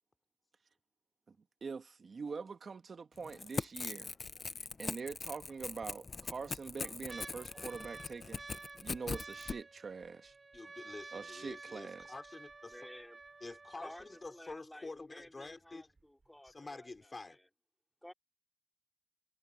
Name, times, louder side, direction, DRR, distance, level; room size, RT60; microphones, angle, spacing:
voice 1, 1.6-4.1 4.8-8.4 8.8-10.3 11.1-12.1, right 5 dB, 60° right, 1.4 m, -44 dB
Crackle / Tearing, 3.2-9.6, left 4 dB, 45° left, 0.5 m, -41 dB
sound 1, 3.6-4.1 4.6-4.7 5.6-6.1 6.6-14.5 15.2-15.3 15.5-16.0 16.5-16.6, right 3 dB, 35° right, 3.4 m, -52 dB
voice 2, 10.5-12.8 13.4-15.9 16.4-17.4, left 3 dB, 30° left, 4.2 m, -48 dB
voice 3, 12.7-13.2 13.8-14.0 14.3-16.9 18.0-18.1, left 1 dB, 5° left, 4.5 m, -53 dB
wide cardioid pair, 170°, 0 cm